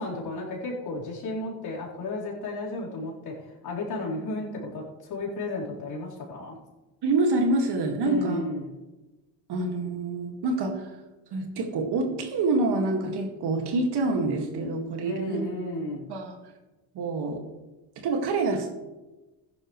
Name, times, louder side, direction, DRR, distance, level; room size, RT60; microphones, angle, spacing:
voice 1, 0.0-6.6 8.0-8.8 15.0-16.1, left 2 dB, 60° left, -5 dB, 4.3 m, -33 dB
voice 2, 7.0-8.4 9.5-10.8 11.3-15.4 16.1-16.4 17.0-17.4 18.0-18.7, right 2 dB, 65° right, 4 dB, 2.2 m, -26 dB
15.0 x 10.5 x 3.3 m, 1.1 s
supercardioid pair, 80°, 43 cm